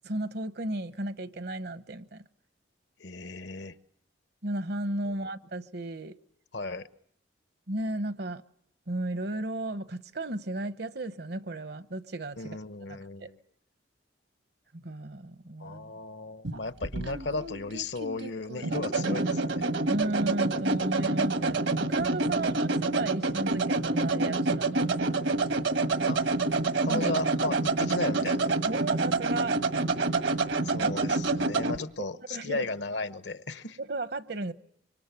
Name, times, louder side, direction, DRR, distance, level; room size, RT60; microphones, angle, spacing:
voice 1, 0.0-2.2 4.4-6.2 7.7-8.4 8.9-12.6 12.9-13.3 14.7-15.9 19.1-19.3 19.9-25.3 26.9-27.2 27.7-27.8 28.7-29.6 30.8-31.2 32.3-32.7 33.8-34.5, right 1 dB, 55° right, 1.0 m, -34 dB
voice 2, 3.0-3.8 6.5-6.9 12.4-13.4 15.6-19.7 26.1-26.2 26.8-28.5 30.6-33.8, left 3 dB, 65° left, 1.1 m, -35 dB
sound 1, 16.4-31.8, right 3 dB, 70° right, 1.5 m, -27 dB
25.5 x 25.0 x 8.4 m
head